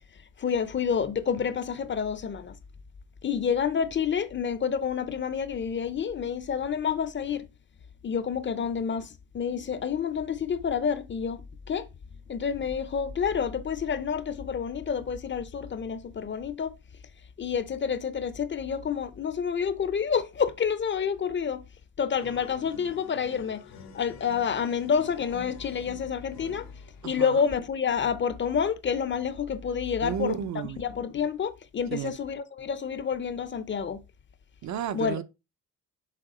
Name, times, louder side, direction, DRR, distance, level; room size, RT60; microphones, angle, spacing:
voice 1, 0.4-2.6 3.2-7.5 8.0-11.9 12.3-16.7 17.4-21.6 22.0-23.6 23.9-26.7 27.0-30.5 30.8-34.0 34.9-35.2, left 7 dB, 35° left, 0.6 m, -29 dB
sound 1, 22.2-27.6, left 5 dB, 90° left, 1.5 m, -48 dB
voice 2, 27.0-27.4 30.0-30.8 31.9-32.2 34.6-35.2, right 8 dB, 55° right, 0.7 m, -32 dB
6.8 x 3.5 x 4.9 m
cardioid pair, 110°, 34 cm